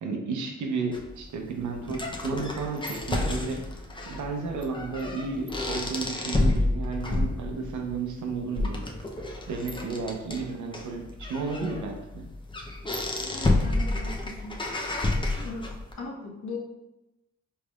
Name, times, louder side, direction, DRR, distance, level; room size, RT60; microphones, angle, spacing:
voice 1, 0.0-3.6 4.0-8.8 9.5-12.3, right 4 dB, 80° right, 2 dB, 0.7 m, -33 dB
sound 1, 0.9-15.9, left 2 dB, 15° left, 0.6 m, -30 dB
voice 2, 13.2-14.6 15.3-15.7 16.0-16.6, left 3 dB, 65° left, -2 dB, 1.1 m, -38 dB
4.3 x 3.3 x 2.3 m, 0.97 s
cardioid pair, 75°, 30 cm